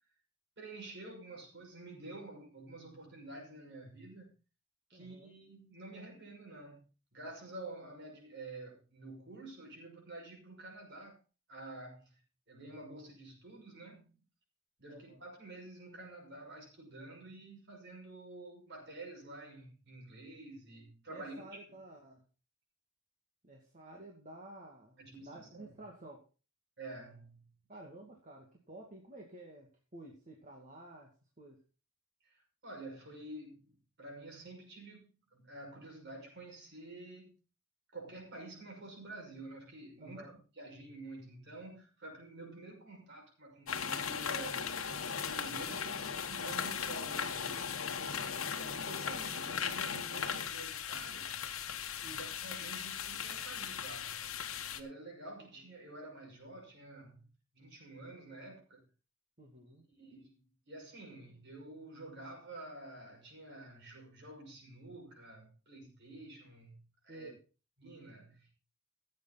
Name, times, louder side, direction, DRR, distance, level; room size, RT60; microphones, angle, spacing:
voice 1, 0.6-4.3 4.9-6.8 7.1-11.2 11.5-12.2 12.5-14.2 14.8-21.8 25.0-25.8 26.8-27.5 32.2-37.3 37.9-51.4 52.0-54.4 54.7-57.3 57.5-58.9 60.0-67.3 67.8-68.5, right 2 dB, 55° right, 6.3 m, -49 dB
voice 2, 4.9-5.3 14.9-15.2 21.1-22.3 23.4-26.2 27.7-31.6 40.0-40.4 45.7-45.9 48.0-48.5 52.0-52.3 55.4-55.5 59.4-59.8 67.1-67.4, right 1 dB, 35° right, 2.3 m, -52 dB
sound 1, 43.7-54.8, left 7 dB, 65° left, 1.3 m, -38 dB
15.0 x 8.7 x 4.1 m
head